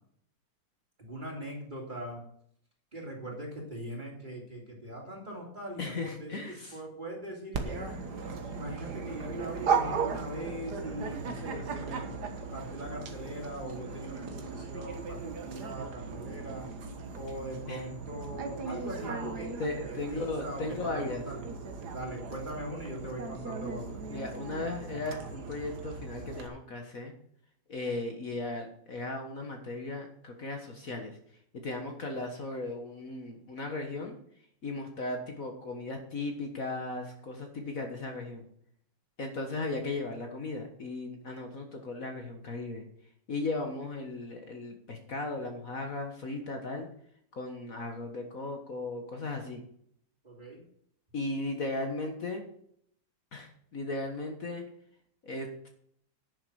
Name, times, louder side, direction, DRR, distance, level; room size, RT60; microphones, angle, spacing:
voice 1, 1.0-2.2 2.9-8.0 8.5-12.1 12.5-16.7 17.1-19.5 19.8-21.4 21.9-24.0 50.2-50.6, right 1 dB, 25° right, -1 dB, 3.3 m, -41 dB
voice 2, 5.8-6.8 17.7-17.9 19.6-21.3 24.1-27.1 27.7-31.2 31.6-34.2 34.6-38.5 39.2-42.8 43.3-46.9 47.3-49.6 51.1-52.4 53.3-54.6 55.2-55.7, left 2 dB, 50° left, 3 dB, 1.8 m, -36 dB
Dog, 7.5-26.5, right 5 dB, 60° right, 1.9 m, -37 dB
10.5 x 7.3 x 6.4 m, 0.66 s
omnidirectional pair, 2.0 m